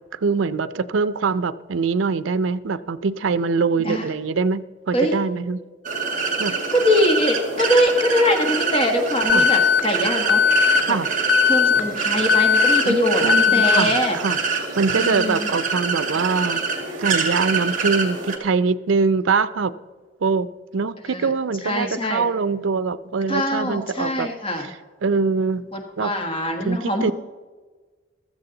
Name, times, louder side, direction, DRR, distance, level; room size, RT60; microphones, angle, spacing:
voice 1, 0.1-5.6 6.4-6.6 9.3-9.5 10.9-11.1 12.9-16.6 17.0-19.7 20.2-24.3 25.0-25.6 26.0-26.1 26.6-27.1, right 4 dB, 80° right, 15 dB, 0.5 m, -23 dB
sound 1, 5.8-18.4, right 5 dB, 40° right, 1.9 m, -25 dB
voice 2, 6.5-11.0 11.4-14.2 15.0-15.5 21.1-21.3 21.6-22.2 23.3-24.7 25.7-27.1, left 1 dB, 30° left, 4 dB, 1.2 m, -23 dB
Alarm, 9.3-9.8 10.3-10.8 11.3-11.8 12.3-12.8 13.3-13.8, left 8 dB, 55° left, 0.7 m, -17 dB
15.5 x 13.0 x 3.9 m, 1.4 s
head